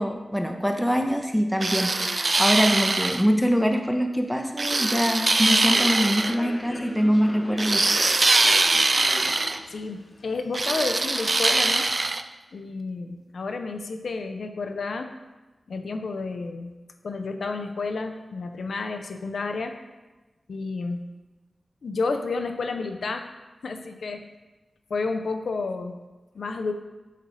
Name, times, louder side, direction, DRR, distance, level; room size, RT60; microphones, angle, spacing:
voice 1, 0.0-7.8, equal, ahead, 3 dB, 0.7 m, -24 dB
sound 1, 1.6-3.2 4.6-6.3 7.6-9.6 10.5-12.2, right 2 dB, 45° right, 0.3 m, -22 dB
Human voice / Subway metro underground, 5.5-11.0, left 1 dB, 45° left, 1.0 m, -39 dB
voice 2, 9.7-11.9 12.5-15.1 15.7-16.7 17.0-19.8 20.5-21.0 21.8-23.3 23.6-24.2 24.9-26.0 26.3-26.7, left 3 dB, 85° left, 6 dB, 0.5 m, -30 dB
8.2 x 3.2 x 4.0 m, 1.2 s
cardioid pair, 60°, 0 cm